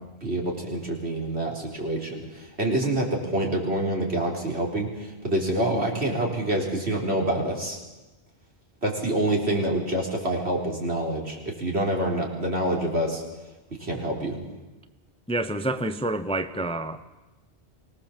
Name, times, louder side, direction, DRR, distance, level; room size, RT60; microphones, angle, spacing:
voice 1, 0.2-7.8 8.8-13.2 13.8-14.4, right 1 dB, 70° right, 4.4 m, -27 dB
voice 2, 15.3-17.2, right 1 dB, 5° left, 0.7 m, -28 dB
24.5 x 18.5 x 7.4 m
omnidirectional pair, 1.1 m